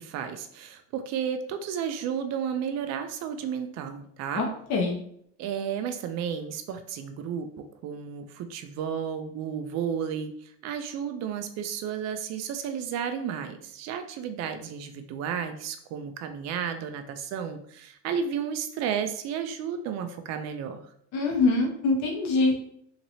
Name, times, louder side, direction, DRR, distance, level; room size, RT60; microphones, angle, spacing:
voice 1, 0.0-4.4 5.4-7.5 7.8-20.9, right 7 dB, 45° right, 7 dB, 0.4 m, -32 dB
voice 2, 4.4-5.0 21.1-22.5, left 3 dB, 45° left, 0 dB, 0.8 m, -24 dB
2.9 x 2.9 x 2.7 m, 0.66 s
supercardioid pair, 115°, 38 cm